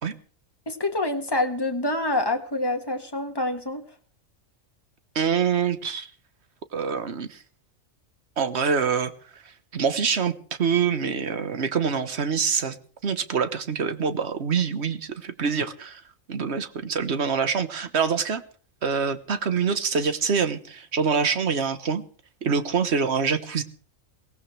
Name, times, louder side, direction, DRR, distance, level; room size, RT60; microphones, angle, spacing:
voice 1, 0.7-3.8, left 2 dB, 20° left, 5 dB, 1.8 m, -26 dB
voice 2, 5.1-6.1 6.7-7.4 8.4-9.1 9.7-10.3 10.6-12.8 13.0-16.0 16.3-18.4 18.8-22.0 22.4-23.6, right 6 dB, 55° right, 11 dB, 1.5 m, -25 dB
23.0 x 18.0 x 3.3 m, 0.41 s
omnidirectional pair, 1.4 m